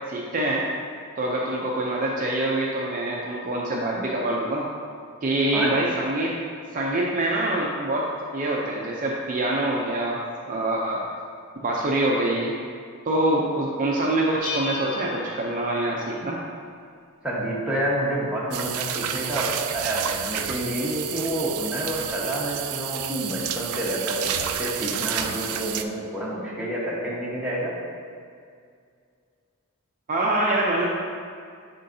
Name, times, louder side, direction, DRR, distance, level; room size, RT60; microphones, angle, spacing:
voice 1, 0.1-0.6 1.2-4.6 5.2-6.4 6.7-8.1 8.3-10.2 10.4-11.0 11.6-12.5 13.1-16.4 30.1-30.9, right 1 dB, 40° right, -3 dB, 0.5 m, -25 dB
Bell, 14.4-16.3, left 5 dB, 65° left, 0.8 m, -36 dB
voice 2, 17.2-27.8, right 1 dB, 5° right, -7 dB, 1.2 m, -28 dB
sound 1, 18.5-25.8, right 9 dB, 85° right, 0.4 m, -30 dB
10.5 x 3.7 x 2.7 m, 2.2 s
head